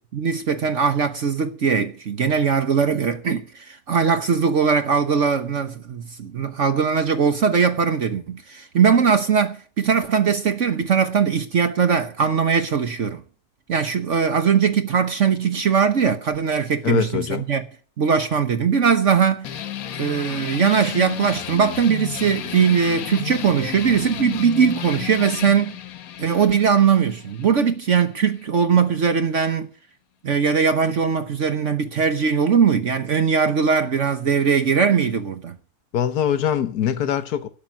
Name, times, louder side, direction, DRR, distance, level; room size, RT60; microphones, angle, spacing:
voice 1, 0.1-13.2 13.7-17.6 18.0-19.5 20.0-25.8 26.2-29.7 30.2-35.6, right 6 dB, 55° right, 1.3 m, -20 dB
voice 2, 16.8-17.5 35.9-37.5, left 9 dB, 90° left, 1.5 m, -23 dB
sound 1, 19.4-28.5, left 10 dB, 70° left, 1.3 m, -33 dB
12.0 x 7.5 x 9.2 m
omnidirectional pair, 1.6 m